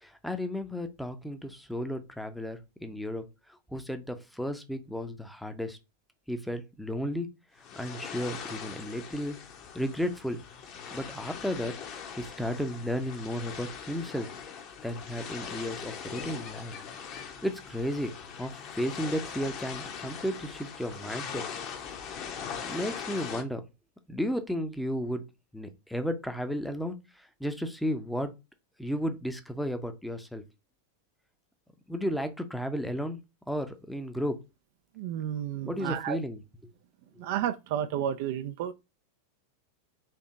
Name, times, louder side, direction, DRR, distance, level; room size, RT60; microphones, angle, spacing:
voice 1, 0.0-3.2 3.7-5.8 6.3-7.3 7.8-9.4 9.7-10.4 10.9-11.7 12.2-14.3 14.8-16.7 17.2-18.1 18.4-21.4 22.6-23.6 24.1-25.2 25.5-28.3 28.8-30.4 31.9-33.2 33.5-34.4 35.6-36.4, equal, ahead, 0.7 m, -33 dB
sound 1, 7.6-23.4, left 7 dB, 35° left, 0.8 m, -41 dB
voice 2, 35.0-36.2 37.2-38.7, right 10 dB, 50° right, 0.4 m, -31 dB
4.4 x 2.8 x 3.7 m
figure-of-eight pair, 90°, 0 cm